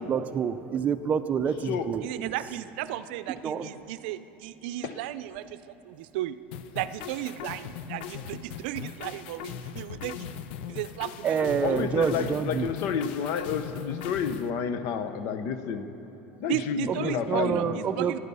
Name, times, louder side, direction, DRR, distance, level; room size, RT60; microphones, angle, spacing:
voice 1, 0.0-2.3 3.4-3.7 11.2-12.7 16.9-18.2, right 7 dB, 25° right, 11 dB, 0.5 m, -27 dB
voice 2, 2.0-6.4 6.7-10.3 10.7-11.9 16.5-18.2, right 14 dB, 75° right, 13 dB, 0.5 m, -35 dB
sound 1, 6.5-14.5, left 9 dB, 80° left, 0.6 m, -39 dB
voice 3, 11.6-15.9 16.4-18.0, left 7 dB, 55° left, 10 dB, 0.9 m, -30 dB
18.0 x 11.5 x 5.5 m, 2.9 s
supercardioid pair, 145°, 6 cm